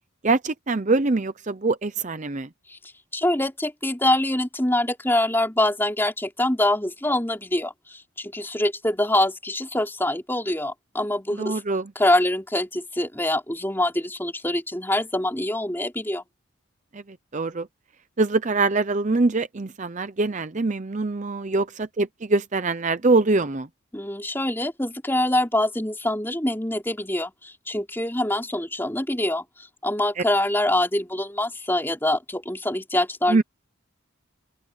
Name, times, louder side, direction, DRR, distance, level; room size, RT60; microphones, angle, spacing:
voice 1, 0.2-2.5 11.4-11.9 16.9-17.0 17.3-17.7 18.2-23.7 30.2-30.3 33.3-33.4, right 3 dB, 35° right, 0.6 m, -23 dB
voice 2, 3.1-11.6 11.9-16.2 23.9-29.4 29.8-33.4, left 1 dB, 10° left, 3.4 m, -24 dB
open air
head